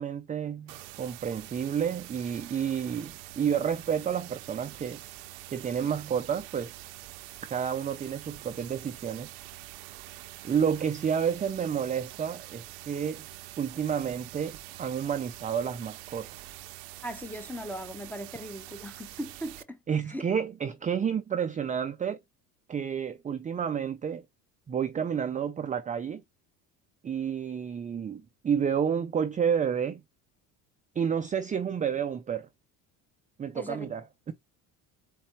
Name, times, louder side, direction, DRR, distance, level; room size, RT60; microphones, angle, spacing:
voice 1, 0.0-5.0 5.5-6.7 7.5-9.3 10.4-13.3 13.6-16.3 19.9-22.2 22.7-24.2 24.7-26.2 27.0-30.0 31.0-32.5 33.4-34.3, right 7 dB, 20° right, 0.4 m, -30 dB
sound 1, 0.7-19.6, right 17 dB, 85° right, 0.7 m, -45 dB
voice 2, 17.0-19.8 20.1-20.3 33.5-33.9, equal, 5° left, 0.9 m, -38 dB
4.3 x 3.6 x 2.9 m
supercardioid pair, 95°, 39 cm